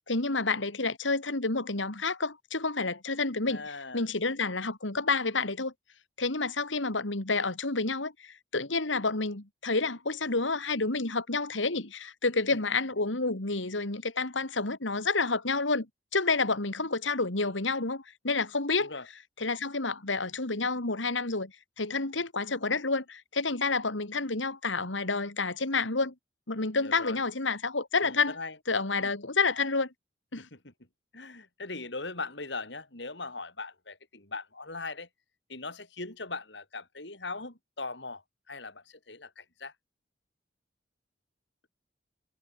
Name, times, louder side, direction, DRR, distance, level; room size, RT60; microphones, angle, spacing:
voice 1, 0.1-5.7 6.2-15.9 16.1-18.9 19.4-21.5 21.8-26.1 26.5-28.3 28.7-29.9 30.3-30.5, left 3 dB, 90° left, 2.7 m, -29 dB
voice 2, 3.5-4.1 18.8-19.1 26.8-27.2 28.0-28.6 29.0-29.1 30.4-30.7 31.1-35.1 35.5-39.7, left 3 dB, 70° left, 5.0 m, -40 dB
head